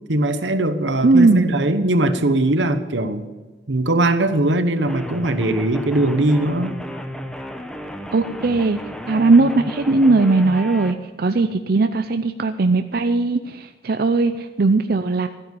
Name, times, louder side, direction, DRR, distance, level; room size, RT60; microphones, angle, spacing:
voice 1, 0.1-3.2 3.7-6.8, right 1 dB, 85° right, 10 dB, 1.1 m, -20 dB
voice 2, 1.0-1.5 8.1-8.8 9.1-15.3, right 3 dB, 55° right, 8 dB, 0.6 m, -18 dB
sound 1, 4.9-10.9, equal, 5° left, 0.9 m, -33 dB
13.0 x 10.0 x 7.2 m, 1.3 s
head